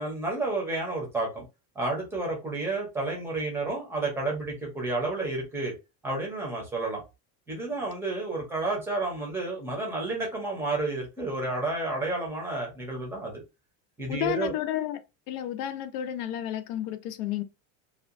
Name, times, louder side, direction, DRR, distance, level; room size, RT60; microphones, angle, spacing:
voice 1, 0.0-1.4 1.8-5.7 6.0-7.0 7.5-13.4 14.0-14.5, right 2 dB, 5° right, 0.6 m, -31 dB
voice 2, 14.1-15.0 15.3-17.4, left 11 dB, 85° left, 0.6 m, -31 dB
2.8 x 2.2 x 2.5 m
cardioid pair, 180°, 43 cm